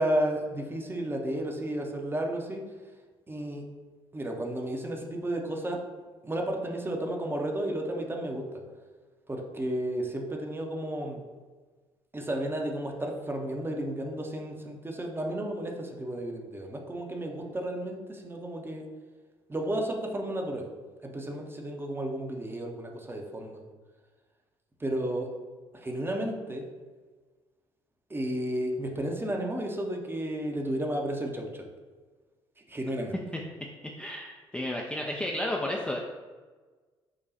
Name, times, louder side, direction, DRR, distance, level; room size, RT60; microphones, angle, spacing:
voice 1, 0.0-2.6 3.3-3.6 4.1-5.8 6.2-8.4 9.3-11.2 12.1-18.8 19.5-20.7 21.0-23.6 24.8-25.3 25.8-26.6 28.1-31.6 32.7-33.2, right 1 dB, 15° right, 2 dB, 0.8 m, -32 dB
voice 2, 33.8-36.0, left 1 dB, 5° left, -1 dB, 0.4 m, -32 dB
5.0 x 2.3 x 4.1 m, 1.4 s
figure-of-eight pair, 50°, 14 cm